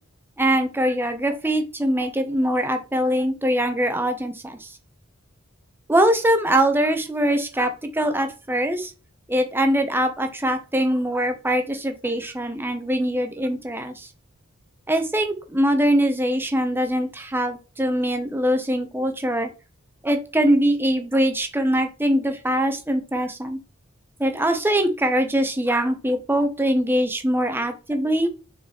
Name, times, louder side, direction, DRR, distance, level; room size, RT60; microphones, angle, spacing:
voice 1, 0.4-4.7 5.9-8.9 9.3-14.1 14.9-19.5 20.0-23.6 24.2-28.3, right 1 dB, 10° right, 6 dB, 1.0 m, -22 dB
6.2 x 4.4 x 4.4 m, 0.33 s
head